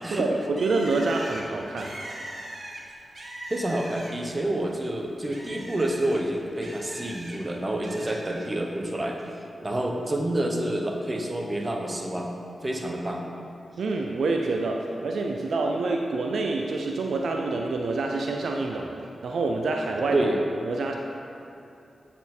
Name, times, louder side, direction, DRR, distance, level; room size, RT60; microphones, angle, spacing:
voice 1, 0.1-1.9 13.8-19.0 19.2-20.3 20.6-20.9, right 3 dB, 75° right, 2 dB, 0.4 m, -27 dB
Bird, 0.6-4.4 4.8-7.4 7.8-8.5, right 1 dB, 50° right, 1.3 m, -41 dB
voice 2, 3.5-9.2 9.6-12.3 12.6-13.3 20.1-20.4, right 1 dB, 30° right, 1 dB, 1.0 m, -28 dB
8.0 x 4.3 x 4.3 m, 2.7 s
supercardioid pair, 40°, 0 cm